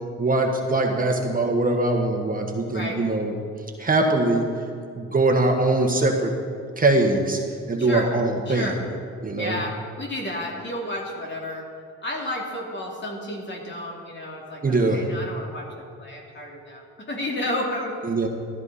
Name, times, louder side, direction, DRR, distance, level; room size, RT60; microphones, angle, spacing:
voice 1, 0.2-3.3 3.8-4.5 5.0-6.3 6.8-7.4 7.7-8.7 9.2-9.6 14.6-15.0 18.0-18.3, right 2 dB, 30° right, 2 dB, 1.5 m, -22 dB
voice 2, 2.7-3.0 7.8-8.1 8.5-8.8 9.4-11.7 12.0-18.0, left 1 dB, 35° left, -1 dB, 2.8 m, -32 dB
14.0 x 13.5 x 4.2 m, 2.3 s
cardioid pair, 90°, 30 cm